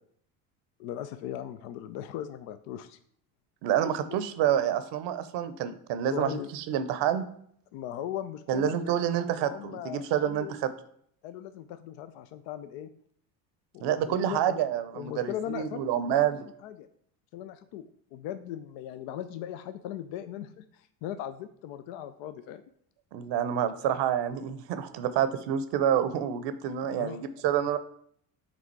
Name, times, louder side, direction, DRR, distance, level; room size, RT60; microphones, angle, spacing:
voice 1, 0.8-3.0 6.1-6.5 7.7-8.9 9.4-10.5 11.2-12.9 13.7-14.6 14.9-16.3 16.6-16.9 17.3-22.6 26.9-27.2, left 11 dB, 65° left, 11 dB, 0.6 m, -38 dB
voice 2, 3.6-7.3 8.5-10.7 13.8-16.4 23.1-27.8, right 10 dB, 60° right, 12 dB, 0.7 m, -28 dB
6.1 x 3.7 x 4.5 m, 0.64 s
hypercardioid pair, 70°, 49 cm